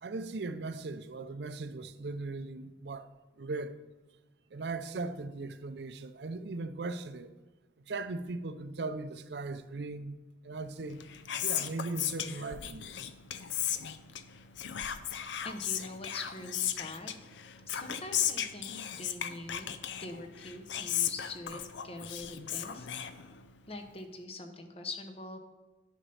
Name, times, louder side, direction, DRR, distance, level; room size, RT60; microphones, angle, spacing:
voice 1, 0.0-3.1 3.4-3.8 4.5-7.3 7.8-11.0 11.4-12.9, right 3 dB, 60° right, 0.5 m, -38 dB
Whispering, 10.8-23.7, left 10 dB, 75° left, 0.5 m, -36 dB
voice 2, 15.4-17.2 17.7-18.7 19.0-19.7 20.0-22.9 23.7-25.4, left 2 dB, 30° left, 0.8 m, -43 dB
10.0 x 5.4 x 5.6 m
head